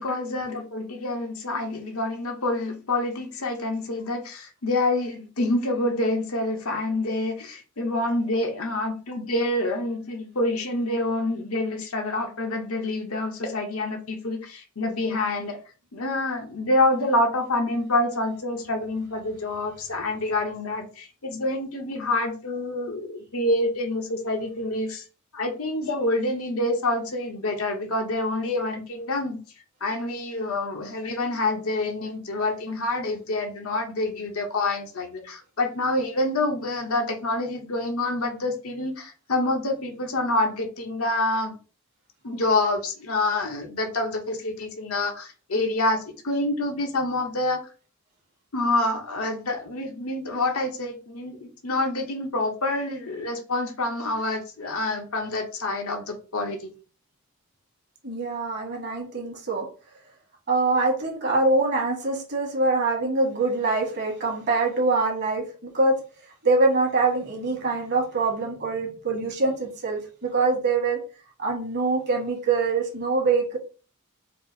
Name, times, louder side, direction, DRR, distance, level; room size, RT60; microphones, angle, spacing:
voice 1, 0.0-15.6 15.9-25.0 25.3-29.4 29.8-41.6 42.2-47.6 48.5-56.7, left 2 dB, 75° left, 0.9 m, -27 dB
voice 2, 58.0-59.7 60.5-66.0 66.4-71.0 71.4-73.6, right 3 dB, 50° right, 1.8 m, -24 dB
4.7 x 2.0 x 4.0 m
head